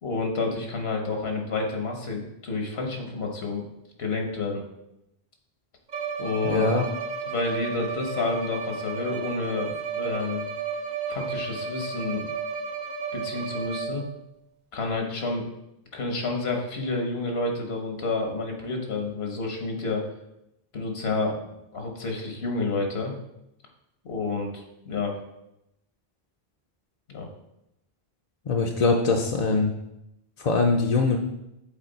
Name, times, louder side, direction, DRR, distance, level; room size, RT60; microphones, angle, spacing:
voice 1, 0.0-3.6 4.0-4.6 6.2-6.7 7.3-10.5 11.1-12.3 13.1-14.1 14.7-15.5 15.9-20.1 20.7-23.1 24.0-25.2 27.1-27.3, left 3 dB, 80° left, 2 dB, 1.3 m, -29 dB
Bowed string instrument, 5.9-14.2, right 5 dB, 50° right, 0.8 m, -33 dB
voice 2, 6.4-6.9 28.5-29.7 30.4-31.2, left 3 dB, 45° left, 1 dB, 0.6 m, -22 dB
7.3 x 4.2 x 4.0 m, 0.86 s
omnidirectional pair, 1.0 m